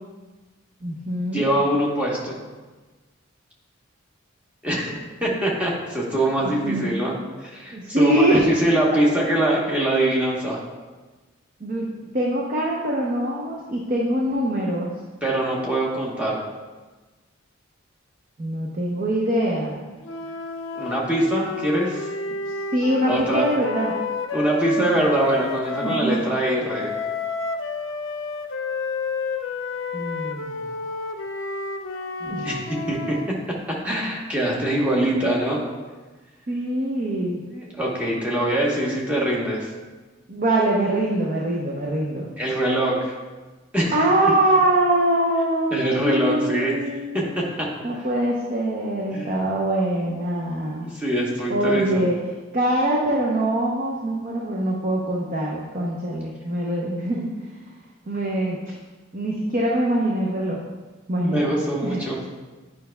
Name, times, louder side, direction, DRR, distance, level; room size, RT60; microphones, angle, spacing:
voice 1, 0.8-1.4 6.4-6.9 7.7-8.5 11.6-11.9 12.1-14.9 18.4-19.8 22.4-23.9 24.8-24.9 25.8-26.2 29.9-30.6 32.2-32.5 36.5-37.4 40.3-42.3 43.9-47.2 47.8-50.9 51.5-52.2 52.5-57.3 58.1-58.6 59.1-60.6 61.1-61.4 61.8-62.0, right 1 dB, 40° right, -2 dB, 0.6 m, -23 dB
voice 2, 1.3-2.4 4.6-4.9 5.2-7.2 7.4-10.6 15.2-16.4 20.8-22.1 23.1-23.5 24.3-26.9 32.4-33.2 33.8-35.6 37.5-39.7 42.4-43.1 43.7-44.0 45.7-46.7 47.1-47.2 47.6-47.7 49.1-49.4 50.8-52.0 61.2-62.2, right 1 dB, 5° right, -4 dB, 1.0 m, -23 dB
sound 1, 20.0-26.1 26.7-33.3, left 3 dB, 70° left, 0.5 m, -30 dB
9.1 x 5.2 x 2.2 m, 1.3 s
head